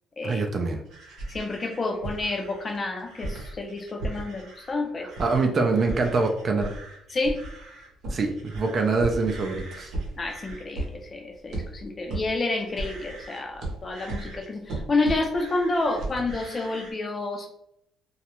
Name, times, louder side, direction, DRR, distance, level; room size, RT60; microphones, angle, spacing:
voice 1, 0.2-0.8 5.2-6.8 8.1-9.9, right 3 dB, 45° right, 4 dB, 0.4 m, -24 dB
sound 1, 0.9-4.7 5.1-5.5 5.7-16.9, right 2 dB, 70° right, 0.8 m, -36 dB
voice 2, 1.3-5.1 7.1-7.4 10.2-17.5, left 2 dB, 30° left, 3 dB, 0.4 m, -29 dB
2.3 x 2.0 x 2.9 m, 0.76 s
cardioid pair, 105°, 0 cm